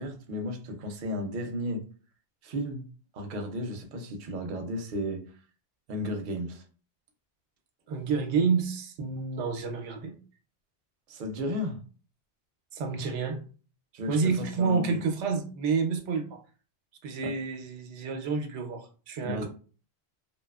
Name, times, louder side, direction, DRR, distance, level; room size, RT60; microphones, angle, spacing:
voice 1, 0.0-1.8 2.4-2.9 3.1-5.2 5.9-6.6 11.1-11.8 13.9-15.0 17.2-17.3 19.2-19.5, left 1 dB, 55° right, 0.6 m, -33 dB
voice 2, 7.9-10.2 12.7-13.4 14.1-16.4 17.0-19.5, right 5 dB, 90° right, 0.9 m, -29 dB
2.7 x 2.2 x 2.2 m
omnidirectional pair, 1.2 m